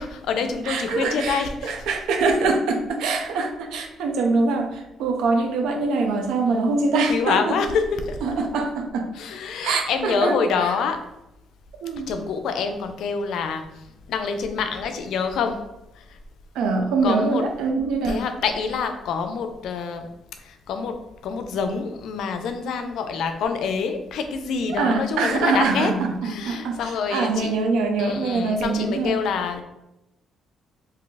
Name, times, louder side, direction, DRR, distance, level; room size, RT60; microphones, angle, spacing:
voice 1, 0.0-1.9 6.4-6.8 7.1-8.2 9.1-11.1 12.1-15.7 15.9-16.2 17.0-17.5 18.0-20.1 20.4-26.0 26.2-27.5 28.0-29.6, left 5 dB, 80° left, 7 dB, 0.4 m, -26 dB
voice 2, 0.7-7.6 8.2-9.1 9.6-10.7 11.8-12.1 16.5-18.2 24.8-29.2, right 3 dB, 90° right, 4 dB, 0.5 m, -24 dB
2.7 x 2.3 x 3.9 m, 0.91 s
cardioid pair, 90°, 0 cm